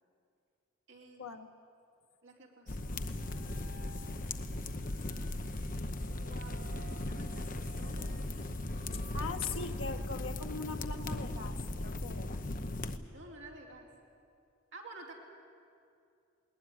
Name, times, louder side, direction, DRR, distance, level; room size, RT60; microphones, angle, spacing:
voice 1, 0.9-1.4 2.2-3.6 6.2-8.1 13.1-13.9 14.7-15.1, right 2 dB, 65° right, -1 dB, 4.1 m, -52 dB
sound 1, 2.7-13.0, left 2 dB, 45° left, 0.9 m, -38 dB
sound 2, 3.1-10.1, right 1 dB, 45° right, 1.0 m, -53 dB
voice 2, 8.9-12.4, left 4 dB, 85° left, 4 dB, 1.0 m, -41 dB
20.0 x 19.5 x 9.9 m, 2.4 s
head